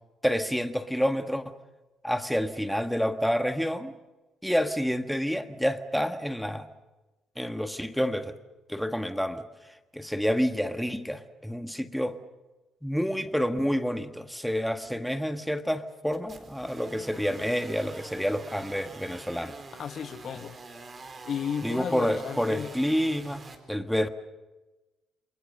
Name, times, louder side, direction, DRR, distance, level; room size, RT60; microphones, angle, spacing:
voice 1, 0.2-1.5 2.0-3.9 4.4-6.7 7.4-8.3 8.7-9.4 9.9-12.2 12.8-19.5 21.6-23.4 23.7-24.1, equal, ahead, 1.6 m, -28 dB
sound 1, 16.1-23.6, right 3 dB, 40° right, 4.1 m, -45 dB
voice 2, 19.7-20.6 21.2-22.7, left 7 dB, 60° left, 1.4 m, -34 dB
28.5 x 21.5 x 6.6 m
cardioid pair, 90°, 0 cm